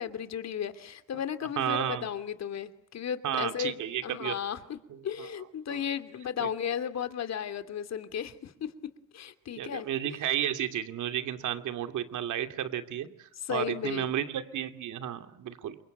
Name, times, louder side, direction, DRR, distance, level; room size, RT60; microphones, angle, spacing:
voice 1, 0.0-8.7 9.1-10.2 13.4-14.1, left 8 dB, 60° left, 11 dB, 2.7 m, -35 dB
voice 2, 1.6-2.1 3.2-4.3 4.9-5.0 5.7-5.8 6.4-6.5 9.6-15.8, right 10 dB, 75° right, 8 dB, 2.7 m, -32 dB
27.5 x 23.5 x 9.1 m, 0.76 s
cardioid pair, 90°, 30 cm